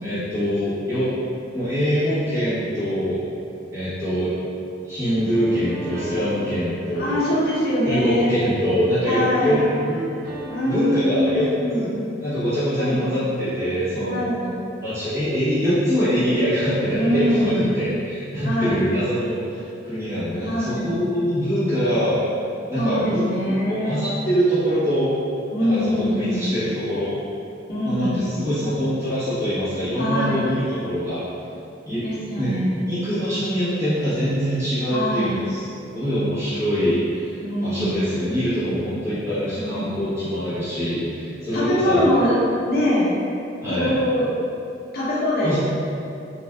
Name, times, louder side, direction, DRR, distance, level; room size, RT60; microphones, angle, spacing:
voice 1, 0.0-1.1 1.5-3.2 3.7-4.3 4.9-7.2 7.8-10.1 10.6-14.2 14.8-22.2 22.7-23.3 23.6-25.1 25.6-27.2 27.8-31.2 31.8-32.0 32.4-32.5 32.9-35.6 35.9-42.1 43.6-43.9 45.4-45.6, equal, 15° right, -15 dB, 1.1 m, -24 dB
sound 1, 5.3-8.5 9.4-10.7, right 1 dB, 55° right, 0.5 m, -37 dB
voice 2, 7.0-8.4 9.1-9.7 10.5-12.1 12.7-13.1 14.0-14.6 16.9-17.7 18.4-18.8 20.4-20.9 22.8-24.0 25.5-26.5 27.7-28.2 30.0-30.4 32.0-32.9 34.9-35.4 37.4-38.0 39.5-39.9 41.5-42.4 42.6-43.1 43.7-44.3 44.9-45.6, equal, 55° left, -8 dB, 0.8 m, -23 dB
3.4 x 2.5 x 2.3 m, 2.7 s
head